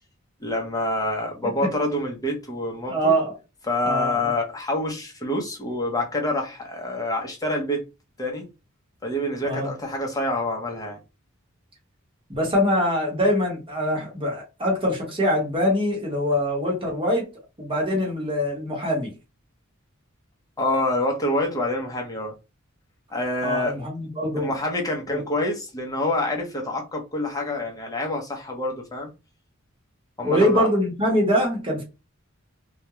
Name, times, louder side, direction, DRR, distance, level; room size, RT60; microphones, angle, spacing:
voice 1, 0.4-3.1 3.7-7.8 8.2-8.5 9.0-11.0 20.6-22.3 23.1-23.8 24.4-29.1 30.2-30.7, left 1 dB, 15° left, 0.7 m, -27 dB
voice 2, 2.9-3.3 3.8-4.2 9.4-9.7 12.3-17.3 17.6-19.1 23.4-24.5 25.1-25.2 30.2-31.8, equal, 25° right, 1.0 m, -23 dB
2.3 x 2.1 x 2.9 m
head